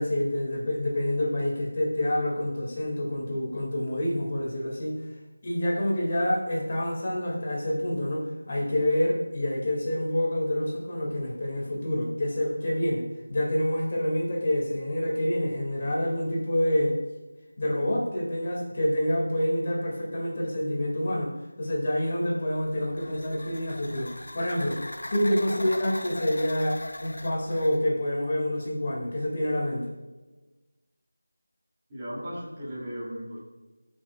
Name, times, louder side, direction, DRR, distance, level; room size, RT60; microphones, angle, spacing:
voice 1, 0.0-5.0 5.4-13.0 13.3-17.0 17.6-24.8 25.1-29.9, left 1 dB, 35° left, -2 dB, 2.1 m, -27 dB
sound 1, 22.5-27.8, left 1 dB, 70° left, 0.8 m, -40 dB
voice 2, 31.9-33.4, equal, 15° right, -9 dB, 2.5 m, -36 dB
17.5 x 6.2 x 2.3 m, 1.2 s
figure-of-eight pair, 175°, 0 cm